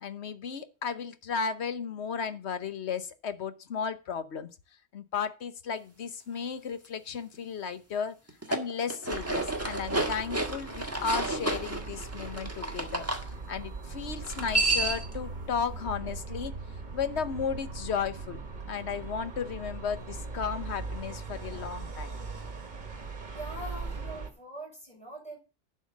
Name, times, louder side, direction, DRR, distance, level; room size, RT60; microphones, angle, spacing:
voice 1, 0.0-4.5 4.9-8.2 8.5-13.1 13.5-16.5 16.9-18.4 18.7-22.1, left 6 dB, 65° left, 1.2 m, -34 dB
sound 1, 8.3-13.2 14.2-15.1, right 2 dB, 10° right, 1.4 m, -31 dB
sound 2, 9.1-24.3, right 4 dB, 40° right, 1.4 m, -40 dB
voice 2, 23.3-25.4, right 1 dB, 5° left, 6.7 m, -42 dB
11.5 x 4.4 x 7.1 m
omnidirectional pair, 1.3 m